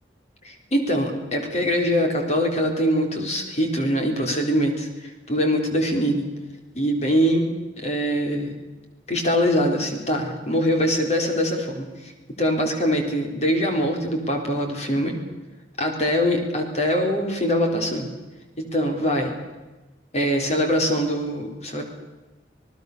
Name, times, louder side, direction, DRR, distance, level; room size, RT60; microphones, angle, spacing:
voice 1, 0.4-6.3 6.7-8.5 9.1-12.1 12.4-15.2 15.8-18.1 18.6-19.4 20.1-21.8, equal, 40° left, 3 dB, 4.1 m, -23 dB
27.5 x 18.5 x 6.9 m, 1.1 s
head